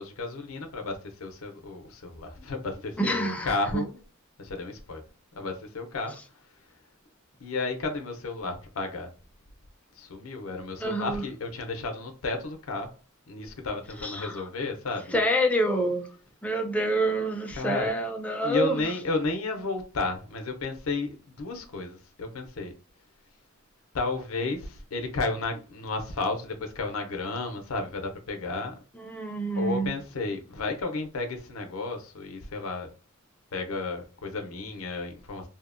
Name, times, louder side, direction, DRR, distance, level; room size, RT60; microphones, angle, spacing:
voice 1, 0.0-4.0 4.4-5.0 5.3-6.7 7.4-9.1 9.9-12.9 13.3-15.2 17.5-17.9 18.4-22.7 23.9-28.8 29.6-32.9 33.5-35.5, left 3 dB, 85° left, 0.5 m, -32 dB
voice 2, 3.0-3.8 10.8-11.2 14.0-14.3 15.1-16.1 16.4-18.8 29.0-29.9, right 1 dB, 5° left, 0.4 m, -27 dB
2.7 x 2.0 x 2.4 m
head